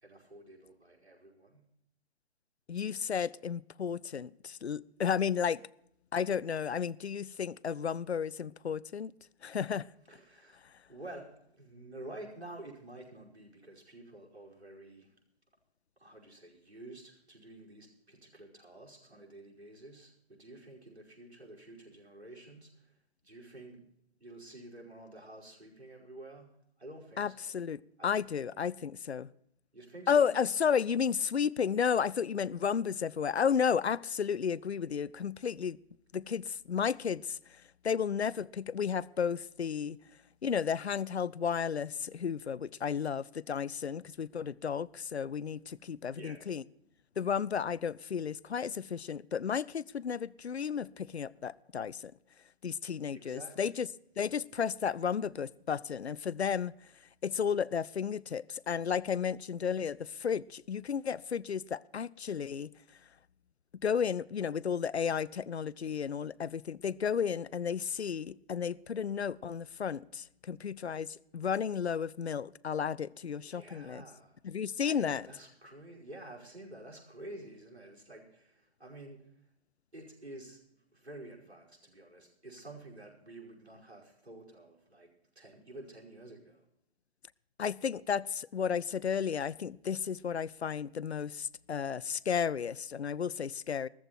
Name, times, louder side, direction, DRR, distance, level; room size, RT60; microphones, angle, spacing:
voice 1, 0.0-1.7 10.1-15.1 16.0-23.9 24.2-27.4 28.0-28.2 29.7-30.3 46.1-46.4 53.1-53.8 73.4-74.4 74.8-79.5 79.9-85.1 85.4-86.7, right 1 dB, 85° right, 5.4 m, -50 dB
voice 2, 2.7-5.6 6.1-9.1 9.4-9.9 27.2-29.3 30.1-35.8 36.1-40.0 40.4-46.6 47.2-52.1 52.6-53.9 54.2-56.9 57.2-62.7 63.8-74.0 74.4-75.2 87.6-93.9, left 7 dB, 80° left, 0.6 m, -33 dB
14.5 x 14.0 x 4.5 m
figure-of-eight pair, 130°, 32 cm